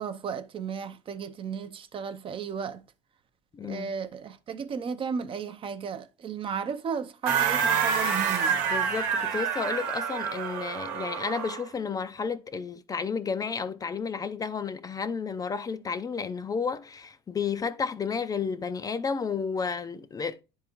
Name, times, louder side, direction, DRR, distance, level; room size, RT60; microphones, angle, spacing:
voice 1, 0.0-2.8 3.6-8.6, right 6 dB, 35° right, 0.5 m, -34 dB
voice 2, 3.5-3.9 8.7-20.4, left 5 dB, 25° left, 0.4 m, -32 dB
sound 1, 7.3-11.7, right 7 dB, 80° right, 1.1 m, -27 dB
9.9 x 3.7 x 3.0 m
supercardioid pair, 105°, 15 cm